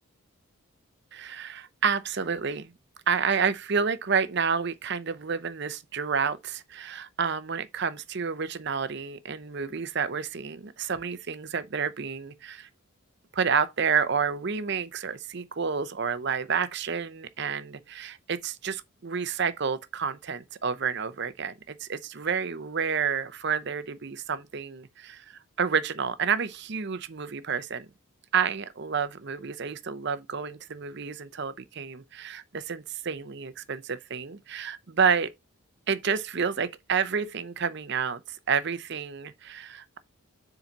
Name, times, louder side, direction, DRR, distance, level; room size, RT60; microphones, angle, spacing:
voice 1, 1.1-2.7 3.1-12.7 13.3-27.9 28.3-35.3 35.9-40.0, right 6 dB, 50° right, 0.6 m, -29 dB
7.2 x 3.9 x 4.0 m
head